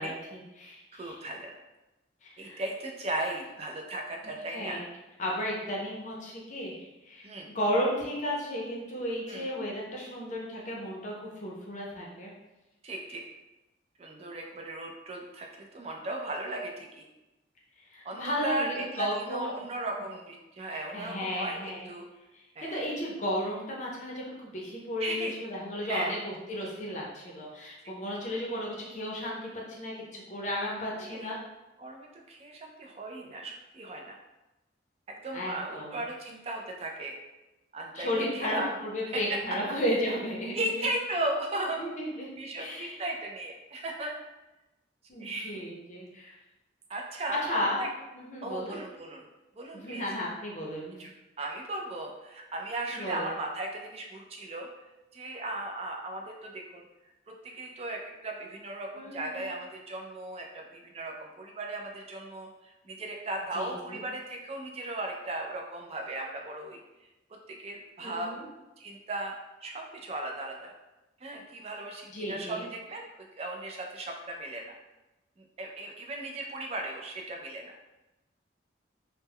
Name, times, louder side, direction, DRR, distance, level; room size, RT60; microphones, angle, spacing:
voice 1, 0.0-1.2 2.2-2.6 4.5-4.9 5.2-12.3 17.9-19.6 20.7-21.9 22.3-31.4 35.3-36.0 37.9-40.7 41.8-42.3 42.6-43.0 45.1-46.3 47.4-47.8 48.1-48.8 49.7-51.1 52.9-53.3 58.9-59.5 63.5-64.0 68.0-68.4 72.1-72.6, equal, 40° left, -3 dB, 0.5 m, -34 dB
voice 2, 0.9-1.6 2.4-4.8 7.2-7.5 9.3-9.5 12.8-13.2 14.0-17.1 18.0-22.1 22.6-22.9 25.0-25.3 25.8-26.1 30.9-31.3 31.8-34.2 35.1-37.2 37.7-38.7 39.1-39.2 40.5-41.8 42.4-44.1 45.2-45.6 46.9-47.9 48.4-49.2 49.5-50.0 51.0-51.1 51.4-54.7 55.1-56.8 57.4-66.8 67.5-68.4 68.8-69.4 69.6-70.7 71.2-73.1 73.4-74.7 75.4-77.8, right 2 dB, 30° right, 1 dB, 0.3 m, -36 dB
2.2 x 2.1 x 3.4 m, 1.0 s
head